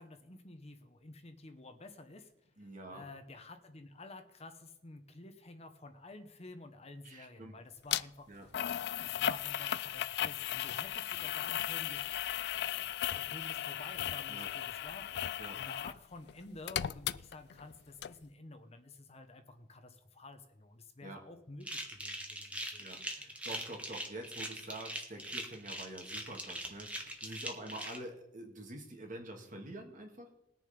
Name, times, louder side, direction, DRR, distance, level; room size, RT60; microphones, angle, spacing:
voice 1, 0.0-2.3 2.9-8.3 9.0-12.1 12.5-12.8 13.1-22.8, left 2 dB, 35° left, 8 dB, 1.0 m, -51 dB
voice 2, 2.6-3.1 7.0-7.6 8.3-8.5 14.3-14.5 15.4-15.6 21.0-21.2 22.8-30.3, right 1 dB, 45° right, 2 dB, 2.3 m, -47 dB
sound 1, 7.9-8.0 8.5-16.0 16.3-17.7 18.0-18.1, left 11 dB, 60° left, 0.4 m, -36 dB
sound 2, 21.6-28.0, right 1 dB, 5° right, 1.6 m, -41 dB
20.5 x 6.8 x 5.2 m, 0.83 s
head